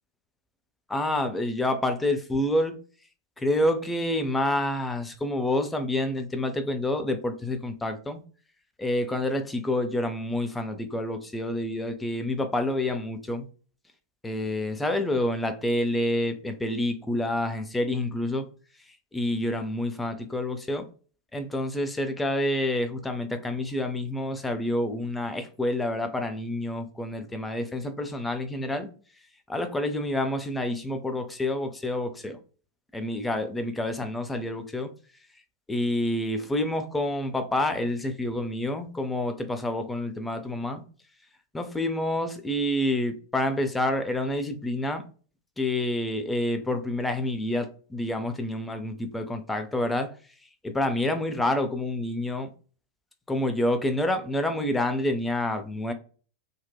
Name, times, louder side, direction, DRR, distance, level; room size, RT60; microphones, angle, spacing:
voice 1, 0.9-2.8 3.4-8.2 8.8-13.5 14.2-18.5 19.1-20.9 21.3-28.9 29.5-32.4 32.9-34.9 35.7-40.8 41.5-45.0 45.6-50.1 50.6-52.5 53.3-55.9, left 1 dB, 10° left, 0.4 m, -28 dB
2.7 x 2.1 x 2.2 m
figure-of-eight pair, 90°, 0 cm